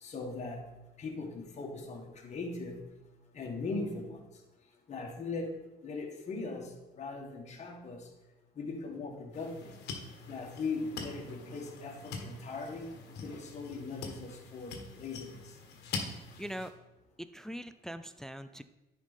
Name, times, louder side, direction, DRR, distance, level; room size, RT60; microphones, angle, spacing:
voice 1, 0.0-0.6 1.0-2.8 3.4-4.2 4.9-5.5 5.8-6.7 7.0-8.0 8.6-9.7 10.3-12.9 13.2-15.4, left 3 dB, 40° left, 1 dB, 1.6 m, -39 dB
sound 1, 9.3-16.7, left 4 dB, 80° left, 1.3 m, -44 dB
voice 2, 16.4-16.7 17.2-18.6, equal, 5° left, 11 dB, 0.3 m, -41 dB
9.9 x 4.9 x 4.1 m, 1.0 s
cardioid pair, 110°, 17 cm